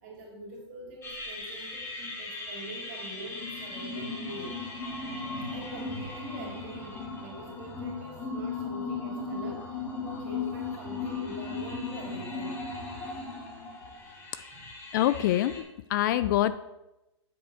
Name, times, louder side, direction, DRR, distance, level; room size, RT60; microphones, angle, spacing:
voice 1, 0.0-4.6 5.5-12.6 14.5-14.7, right 1 dB, 40° right, -1 dB, 3.2 m, -44 dB
sound 1, 1.0-15.6, left 3 dB, 15° left, 1.6 m, -37 dB
voice 2, 14.9-15.6 15.9-16.6, left 13 dB, 45° left, 14 dB, 0.4 m, -24 dB
7.8 x 4.6 x 6.5 m, 0.94 s
hypercardioid pair, 140°, 15 cm